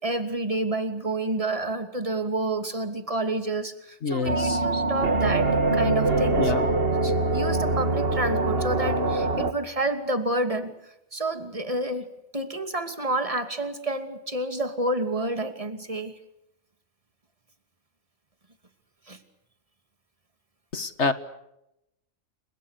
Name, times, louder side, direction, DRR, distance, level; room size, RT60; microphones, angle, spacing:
voice 1, 0.0-6.5 7.0-10.7 11.1-12.1 12.3-16.1 19.1-19.2, right 2 dB, 25° right, 8 dB, 2.8 m, -29 dB
voice 2, 4.0-4.6 6.4-6.7 20.7-21.1, left 4 dB, 55° left, 12 dB, 1.8 m, -27 dB
sound 1, 4.3-9.5, right 2 dB, 45° right, 2.0 m, -24 dB
30.0 x 26.5 x 6.7 m, 0.85 s
omnidirectional pair, 1.5 m